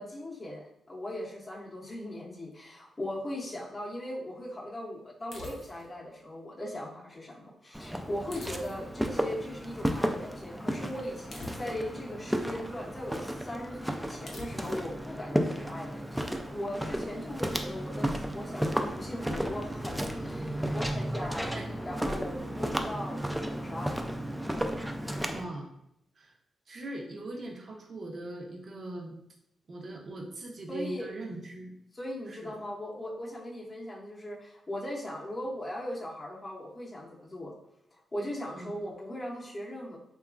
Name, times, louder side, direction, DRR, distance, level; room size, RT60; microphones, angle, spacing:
voice 1, 0.0-24.0 30.7-31.1 31.9-37.5 37.9-40.0, left 1 dB, 25° left, -5 dB, 0.6 m, -39 dB
sound 1, 5.3-6.0 8.3-9.1 11.3-12.0 14.3-14.9, left 2 dB, 65° left, 0.6 m, -46 dB
Walk footsteps, 7.7-25.4, equal, 5° right, 0.3 m, -33 dB
voice 2, 25.2-25.7 26.2-26.3 26.7-29.2 29.7-31.7 32.3-32.5 38.6-38.7, right 1 dB, 50° right, 0 dB, 0.6 m, -40 dB
2.8 x 2.3 x 2.4 m, 0.78 s
cardioid pair, 70°, 0 cm